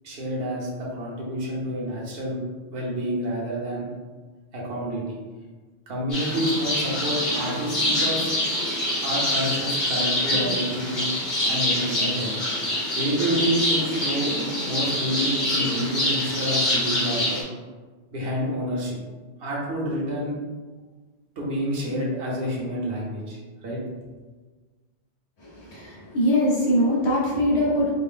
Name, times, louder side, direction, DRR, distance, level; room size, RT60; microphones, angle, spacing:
voice 1, 0.0-2.4 2.7-3.8 4.5-5.2 5.9-8.3 9.0-11.1 11.5-12.3 12.9-14.3 14.6-17.4 18.1-19.0 19.4-20.4 21.4-23.8, equal, 65° right, -4 dB, 1.1 m, -28 dB
sound 1, 6.1-17.4, left 1 dB, 45° left, 1.1 m, -25 dB
voice 2, 25.4-27.9, equal, 75° left, -6 dB, 1.2 m, -22 dB
4.2 x 2.1 x 3.6 m, 1.3 s
omnidirectional pair, 1.1 m